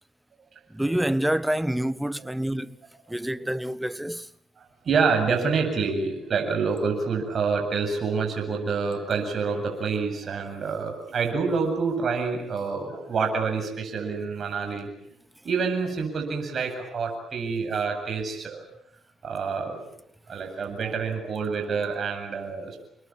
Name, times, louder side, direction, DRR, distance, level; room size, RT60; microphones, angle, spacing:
voice 1, 0.7-2.8 3.1-4.3, right 1 dB, 5° right, 1.2 m, -27 dB
voice 2, 4.8-14.9 15.4-18.6 19.2-19.8 20.3-22.8, right 5 dB, 50° right, 7.8 m, -27 dB
29.5 x 21.0 x 9.0 m
cardioid pair, 90°, 0 cm